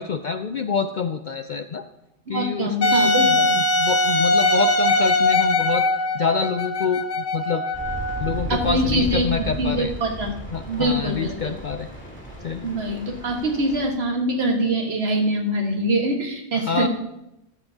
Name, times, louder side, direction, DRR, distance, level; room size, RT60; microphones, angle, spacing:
voice 1, 0.0-1.9 2.3-5.8 6.1-7.6 8.2-9.9 10.5-11.9 12.4-12.8 16.5-16.9, left 5 dB, 60° left, 9 dB, 0.5 m, -27 dB
voice 2, 2.3-3.6 8.5-9.3 9.6-10.3 10.6-11.5 12.6-16.9, right 1 dB, 60° right, 2 dB, 1.7 m, -24 dB
Wind instrument woodwind instrument, 2.8-8.4, left 1 dB, 85° left, 1.2 m, -21 dB
sound 1, 7.7-13.9, right 1 dB, 10° left, 2.4 m, -34 dB
14.0 x 11.0 x 2.8 m, 0.87 s
omnidirectional pair, 1.2 m